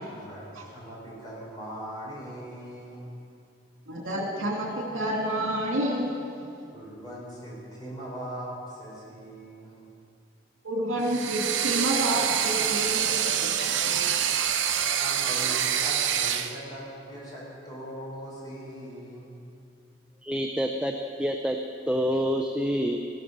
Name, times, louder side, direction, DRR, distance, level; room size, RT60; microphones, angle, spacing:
voice 1, 0.1-3.1 6.7-9.9 14.1-14.4 15.0-19.3, right 1 dB, 20° left, -6 dB, 4.6 m, -40 dB
voice 2, 3.9-6.3 10.6-14.0, right 1 dB, 85° right, 0 dB, 2.7 m, -29 dB
sound 1, 11.0-16.6, right 9 dB, 60° right, 0.8 m, -26 dB
voice 3, 20.2-21.6 21.9-23.0, equal, 5° right, 3 dB, 0.5 m, -27 dB
15.0 x 12.5 x 6.6 m, 2.5 s
head